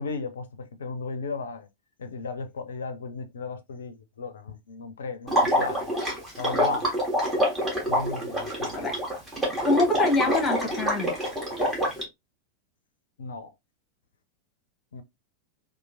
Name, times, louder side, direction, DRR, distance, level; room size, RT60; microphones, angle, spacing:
voice 1, 0.0-1.7 2.0-5.9 6.4-6.9 7.8-8.8 13.2-13.5 14.9-15.0, left 4 dB, 65° left, 0.4 m, -35 dB
Water / Liquid, 5.3-12.0, equal, 15° right, 1.2 m, -26 dB
voice 2, 9.6-11.1, left 2 dB, 20° left, 1.0 m, -24 dB
2.9 x 2.3 x 2.5 m
figure-of-eight pair, 90°, 0 cm